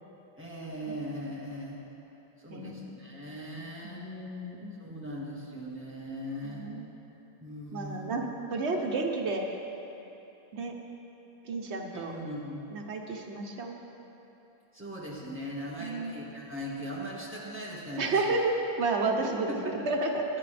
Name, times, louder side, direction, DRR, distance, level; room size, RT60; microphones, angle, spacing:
voice 1, 0.4-1.8 2.4-4.0 4.8-6.7 7.4-8.1 8.8-8.9 11.9-12.7 14.7-18.3 19.5-19.8, equal, 10° right, -5 dB, 1.8 m, -39 dB
voice 2, 2.5-2.9 3.8-4.7 6.4-6.9 7.7-9.4 10.5-10.7 11.5-12.1 12.7-13.8 15.8-16.2 18.0-19.5 19.9-20.2, right 3 dB, 80° right, 2 dB, 1.2 m, -31 dB
20.5 x 9.6 x 3.4 m, 3.0 s
omnidirectional pair, 1.1 m